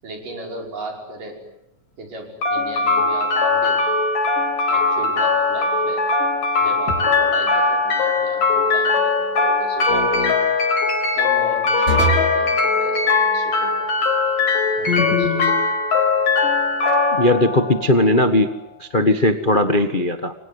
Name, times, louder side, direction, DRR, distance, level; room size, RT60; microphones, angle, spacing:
voice 1, 0.0-1.4 2.0-3.9 4.7-6.0 6.6-10.5 11.2-13.9 14.8-15.6, right 2 dB, 85° right, 2 dB, 7.3 m, -35 dB
sound 1, 2.4-18.4, left 3 dB, 90° left, 6.1 m, -20 dB
sound 2, 6.9-7.4 9.9-10.4 11.9-12.4 14.9-15.6, left 2 dB, 30° left, 3.9 m, -23 dB
voice 2, 17.1-18.5 18.8-20.3, left 1 dB, 55° left, 7 dB, 0.5 m, -18 dB
29.5 x 25.0 x 8.1 m, 0.84 s
omnidirectional pair, 3.7 m